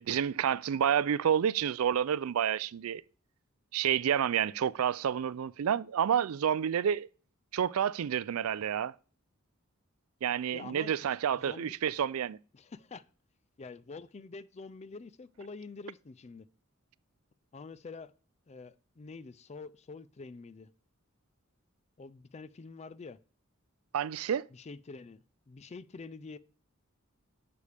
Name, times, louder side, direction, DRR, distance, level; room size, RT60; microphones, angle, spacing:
voice 1, 0.0-3.0 3.7-7.1 7.5-8.9 10.2-12.4 23.9-24.5, right 8 dB, 85° right, 0.4 m, -29 dB
voice 2, 10.5-10.9 11.3-11.8 12.5-13.1 13.6-16.5 17.5-18.1 18.5-20.7 22.0-23.2 24.5-26.4, left 4 dB, 30° left, 0.4 m, -46 dB
11.5 x 6.8 x 3.4 m
head